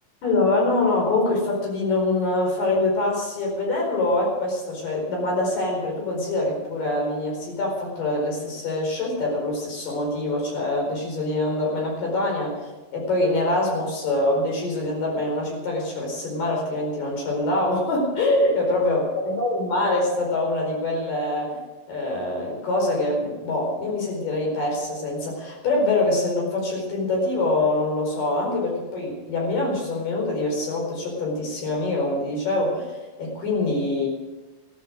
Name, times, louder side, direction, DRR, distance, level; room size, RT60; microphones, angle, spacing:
voice 1, 0.2-12.5 12.9-21.6 21.9-34.1, left 2 dB, 75° left, 0 dB, 6.2 m, -24 dB
15.5 x 12.5 x 6.5 m, 1.1 s
omnidirectional pair, 3.9 m